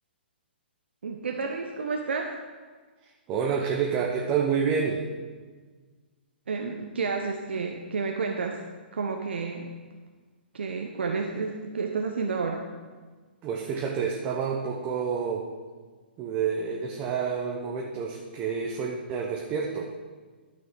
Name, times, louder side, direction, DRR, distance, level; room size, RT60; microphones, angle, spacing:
voice 1, 1.0-2.3 6.5-8.6 8.9-9.7 10.5-12.6, right 4 dB, 75° right, 2 dB, 0.9 m, -30 dB
voice 2, 3.0-5.1 13.4-15.5 16.2-19.9, right 6 dB, 25° right, -1 dB, 1.0 m, -29 dB
12.0 x 6.2 x 4.7 m, 1.4 s
hypercardioid pair, 130°, 6 cm